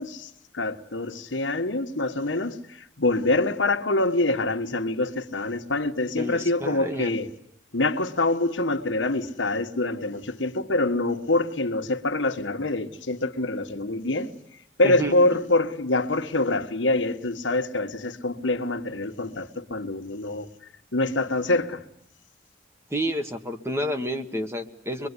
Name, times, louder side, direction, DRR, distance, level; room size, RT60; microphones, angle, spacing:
voice 1, 0.0-7.3 7.7-14.3 14.8-20.5 20.9-21.8, left 2 dB, 90° left, 1.5 m, -25 dB
voice 2, 6.2-7.2 14.8-15.1 22.9-25.1, equal, 15° right, 1.5 m, -29 dB
25.0 x 22.0 x 9.9 m
head